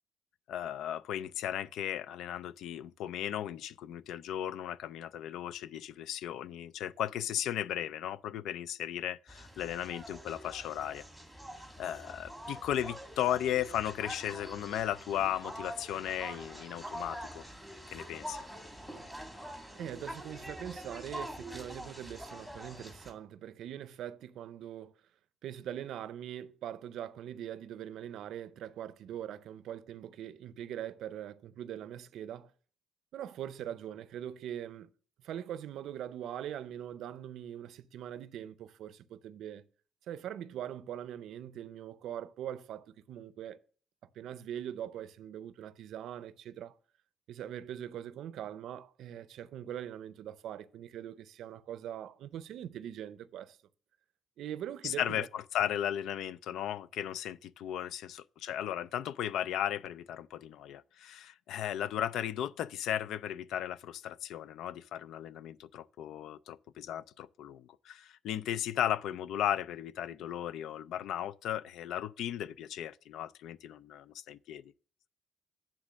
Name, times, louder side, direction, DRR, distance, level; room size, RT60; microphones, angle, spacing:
voice 1, 0.5-11.0 11.8-17.4 17.9-18.4 54.8-74.7, left 11 dB, 85° left, 0.3 m, -36 dB
sound 1, 9.3-23.1, equal, 5° left, 1.6 m, -45 dB
voice 2, 19.8-24.9 25.4-32.5 33.1-34.9 35.2-39.6 40.1-43.6 44.1-46.8 47.3-53.6 54.4-55.3, right 10 dB, 80° right, 0.5 m, -42 dB
9.7 x 3.6 x 6.2 m
cardioid pair, 105°, 0 cm